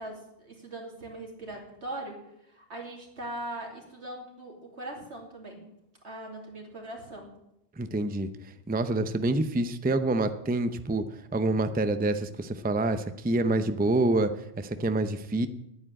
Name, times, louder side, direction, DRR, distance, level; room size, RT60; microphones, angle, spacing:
voice 1, 0.0-2.2 2.5-5.7 6.0-7.3, right 1 dB, 80° right, 0 dB, 3.2 m, -40 dB
voice 2, 7.8-8.3 8.7-11.0 11.3-15.5, right 2 dB, 10° right, 10 dB, 0.5 m, -27 dB
10.5 x 9.5 x 8.8 m, 0.83 s
omnidirectional pair, 1.1 m